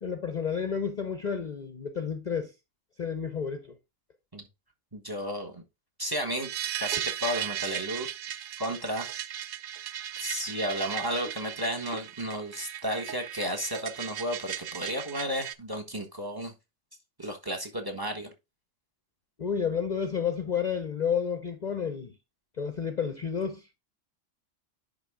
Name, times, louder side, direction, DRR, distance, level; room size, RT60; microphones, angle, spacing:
voice 1, 0.0-2.5 3.0-3.7 19.4-22.1 22.6-23.7, left 7 dB, 40° left, 0.7 m, -31 dB
voice 2, 4.9-5.6 6.0-6.5 6.8-8.1 8.6-9.1 10.2-16.5 17.2-18.3, equal, 20° right, 1.2 m, -33 dB
sound 1, 6.4-15.5, right 11 dB, 65° right, 0.5 m, -36 dB
10.5 x 3.8 x 3.6 m
omnidirectional pair, 1.3 m